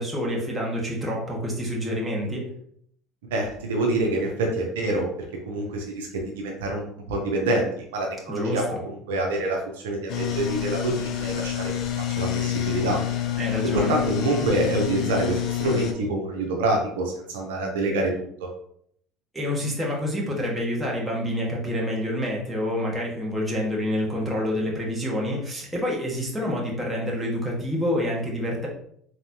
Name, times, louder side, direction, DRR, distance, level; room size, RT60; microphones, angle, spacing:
voice 1, 0.0-2.5 8.3-8.8 13.4-13.9 19.3-28.7, left 1 dB, 10° right, -3 dB, 1.5 m, -27 dB
voice 2, 3.3-5.1 5.5-13.0 13.6-18.5, right 2 dB, 85° right, 1 dB, 0.8 m, -26 dB
sound 1, 10.1-15.9, left 12 dB, 60° left, 0.6 m, -28 dB
3.9 x 3.2 x 2.8 m, 0.67 s
supercardioid pair, 85°, 0 cm